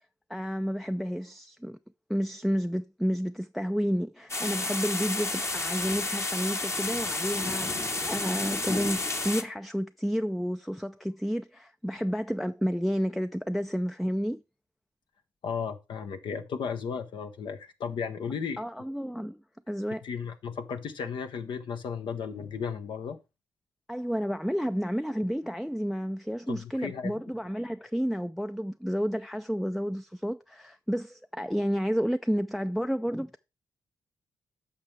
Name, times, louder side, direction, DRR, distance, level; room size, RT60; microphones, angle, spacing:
voice 1, 0.3-1.8 2.1-14.4 18.6-19.4 19.7-20.0 23.9-33.4, equal, ahead, 0.4 m, -31 dB
sound 1, 4.3-9.4, left 2 dB, 35° left, 1.1 m, -31 dB
voice 2, 15.4-18.6 20.0-23.2 26.5-27.1, left 6 dB, 70° left, 0.9 m, -34 dB
8.5 x 5.9 x 3.3 m
supercardioid pair, 45°, 8 cm